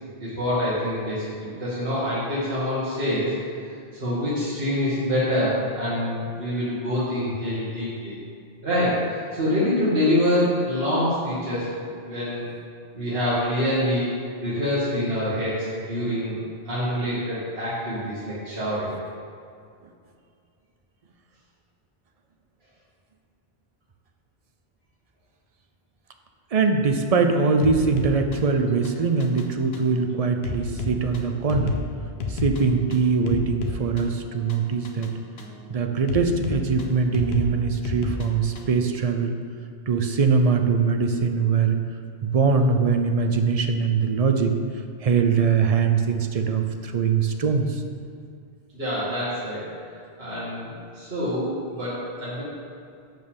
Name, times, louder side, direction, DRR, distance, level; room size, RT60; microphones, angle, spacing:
voice 1, 0.2-3.3 4.0-8.1 8.6-12.5 12.9-14.1 14.4-16.4 16.7-18.9 48.7-49.7 50.2-52.4, left 1 dB, 70° right, -10 dB, 2.0 m, -26 dB
voice 2, 26.5-31.8 32.3-35.1 35.7-39.4 39.9-41.8 42.2-44.6 45.0-47.8, right 5 dB, 45° right, 5 dB, 0.6 m, -22 dB
sound 1, 27.6-38.8, left 3 dB, 75° left, 1.1 m, -33 dB
6.4 x 5.3 x 7.0 m, 2.4 s
omnidirectional pair, 1.1 m